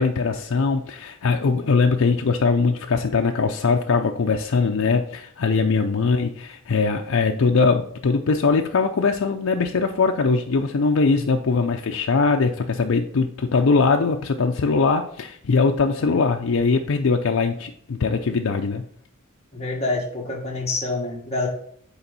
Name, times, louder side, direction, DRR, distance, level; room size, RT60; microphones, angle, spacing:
voice 1, 0.0-18.8, left 4 dB, 70° left, 3 dB, 0.5 m, -21 dB
voice 2, 19.5-21.5, left 2 dB, 30° left, -1 dB, 1.5 m, -27 dB
7.0 x 4.4 x 4.0 m, 0.63 s
head